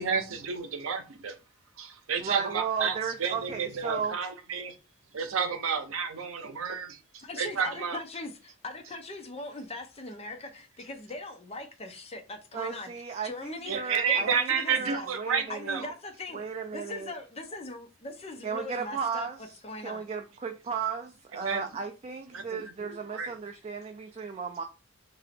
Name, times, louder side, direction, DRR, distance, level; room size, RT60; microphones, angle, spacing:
voice 1, 0.0-1.4 1.8-4.8 5.1-8.0 8.8-9.0 13.7-16.0 21.3-21.8 22.3-23.3 24.2-24.3, right 6 dB, 80° right, 0.7 m, -31 dB
voice 2, 2.2-4.1 12.5-15.8 16.3-17.1 18.4-24.6, right 6 dB, 30° right, 0.3 m, -35 dB
voice 3, 7.2-12.9 13.2-13.8 14.1-15.1 15.5-16.4 16.7-19.3 19.6-20.0, left 2 dB, 30° left, 0.6 m, -40 dB
3.0 x 2.7 x 4.1 m
head